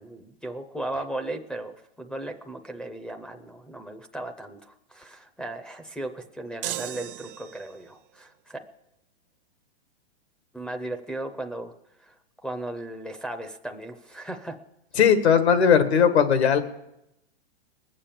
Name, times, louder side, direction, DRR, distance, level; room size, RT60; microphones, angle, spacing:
voice 1, 0.0-8.6 10.5-11.7 12.1-12.2 12.4-14.6, right 1 dB, 5° left, 2 dB, 0.5 m, -36 dB
sound 1, 6.6-7.9, right 14 dB, 60° right, 0.8 m, -36 dB
voice 2, 15.0-16.6, left 7 dB, 85° left, 9 dB, 1.9 m, -18 dB
20.0 x 7.5 x 6.9 m, 0.85 s
hypercardioid pair, 140°, 32 cm